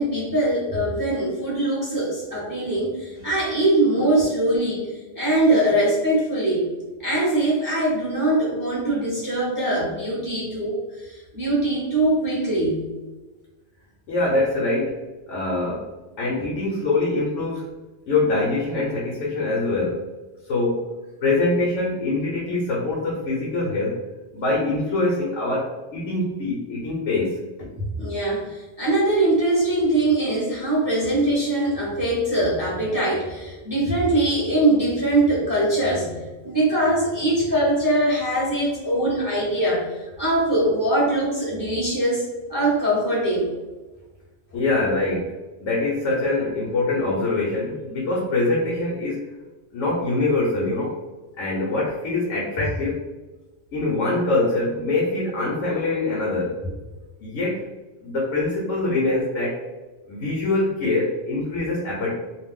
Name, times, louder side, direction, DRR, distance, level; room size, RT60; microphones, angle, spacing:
voice 1, 0.0-4.9 5.1-6.7 7.0-12.8 27.8-36.1 36.4-42.2 42.5-43.5, right 1 dB, 20° right, -5 dB, 0.6 m, -22 dB
voice 2, 14.1-15.0 15.3-15.9 16.2-17.7 18.1-20.1 20.5-20.8 21.2-24.0 24.3-27.4 44.5-45.3 45.6-49.3 49.7-51.0 51.4-53.0 53.7-56.6 57.2-57.6 58.0-59.6 60.1-62.1, left 2 dB, 85° left, -4 dB, 1.0 m, -24 dB
2.5 x 2.1 x 3.5 m, 1.2 s
omnidirectional pair, 1.2 m